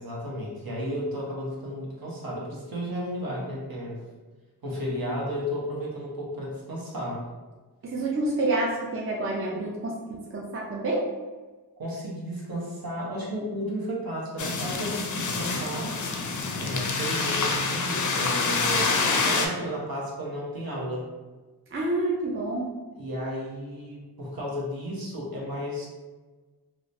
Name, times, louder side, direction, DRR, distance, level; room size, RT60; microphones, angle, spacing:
voice 1, 0.0-4.0 4.6-7.2 11.8-15.9 16.6-21.0 22.9-25.9, equal, 60° right, -4 dB, 1.0 m, -33 dB
voice 2, 7.8-11.1 21.7-22.7, right 2 dB, 35° right, -2 dB, 0.5 m, -28 dB
sound 1, 14.4-19.5, left 4 dB, 50° left, 0.5 m, -27 dB
2.9 x 2.1 x 2.6 m, 1.3 s
cardioid pair, 45°, 39 cm